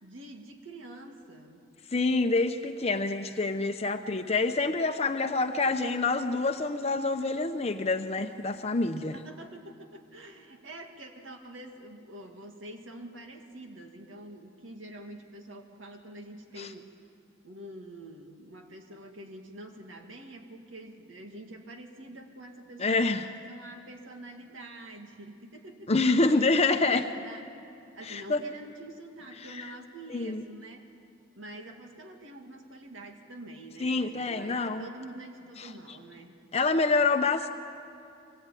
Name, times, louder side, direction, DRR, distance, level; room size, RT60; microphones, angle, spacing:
voice 1, 0.0-1.6 8.6-8.7 9.0-16.9 17.4-26.1 26.3-27.6 27.9-30.9 31.4-36.3, right 1 dB, 75° right, 3 dB, 2.1 m, -46 dB
voice 2, 1.9-9.2 16.6-16.7 22.8-23.2 25.9-27.1 28.0-28.4 30.1-30.4 33.8-34.9 35.6-35.7 36.5-37.5, left 3 dB, 35° left, 6 dB, 0.8 m, -27 dB
24.5 x 20.0 x 9.1 m, 2.7 s
head